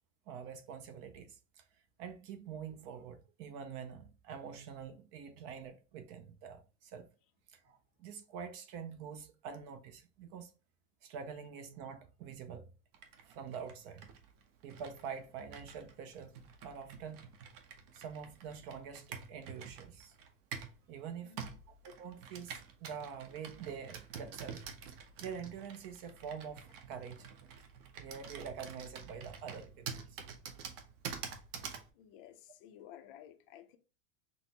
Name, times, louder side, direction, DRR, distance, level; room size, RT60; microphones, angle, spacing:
voice 1, 0.3-1.7 2.0-7.1 7.5-10.5 11.0-12.7 13.2-14.0 14.6-17.3 17.9-20.1 20.9-21.4 21.8-27.3 28.0-30.2, right 7 dB, 35° right, 0.4 m, -46 dB
Computer keyboard, 12.9-20.8 21.4-31.9, right 6 dB, 50° right, 0.8 m, -48 dB
voice 2, 21.2-21.6 31.9-33.8, left 11 dB, 50° left, 0.5 m, -54 dB
5.9 x 2.0 x 2.8 m
supercardioid pair, 150°, 35 cm